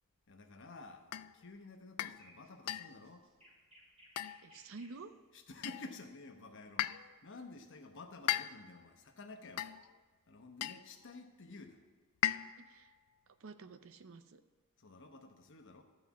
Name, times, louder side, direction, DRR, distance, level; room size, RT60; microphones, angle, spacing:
voice 1, 0.3-3.3 5.3-7.0 7.2-9.7 10.3-11.8 14.8-15.8, left 3 dB, 55° left, 5 dB, 1.0 m, -52 dB
sound 1, 1.1-1.4 2.0-2.2 2.7-3.0 4.2-4.6 5.6-6.0 6.8-7.2 8.3-8.8 9.6-10.0 10.6-10.9 12.2-12.7, left 13 dB, 90° left, 0.3 m, -37 dB
sound 2, 2.1-5.1 7.1-7.4, equal, 30° right, 2.5 m, -63 dB
voice 2, 4.4-5.2 12.6-12.9 13.4-14.4, right 4 dB, 65° right, 11 dB, 0.5 m, -50 dB
12.5 x 4.4 x 7.1 m, 1.4 s
head